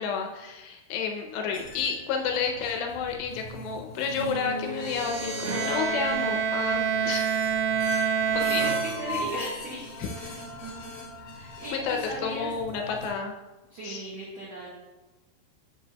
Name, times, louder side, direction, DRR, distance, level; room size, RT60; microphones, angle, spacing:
voice 1, 0.0-7.3 7.9-8.2 8.5-8.7 10.0-10.1 11.7-13.3 13.8-14.0, left 6 dB, 80° left, 3 dB, 2.7 m, -31 dB
Metallic high pitched scraping, 1.5-13.1, left 1 dB, 55° left, 1.6 m, -39 dB
sound 1, 4.6-7.9, equal, 35° right, 2.5 m, -39 dB
Bowed string instrument, 5.5-9.5, right 7 dB, 90° right, 2.3 m, -27 dB
voice 2, 8.4-10.4 11.2-12.5 13.7-14.7, right 1 dB, 70° right, -7 dB, 1.5 m, -37 dB
10.0 x 7.3 x 2.2 m, 1.1 s
omnidirectional pair, 5.2 m